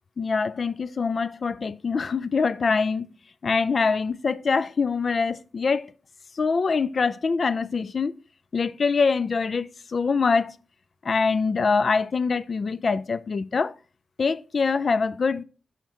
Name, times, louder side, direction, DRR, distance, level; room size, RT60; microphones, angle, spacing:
voice 1, 0.2-3.1 3.4-5.9 6.4-8.2 8.5-10.5 11.0-13.7 14.2-15.4, left 4 dB, 50° left, 0.3 m, -24 dB
7.0 x 5.7 x 2.8 m
wide cardioid pair, 115°, 0 cm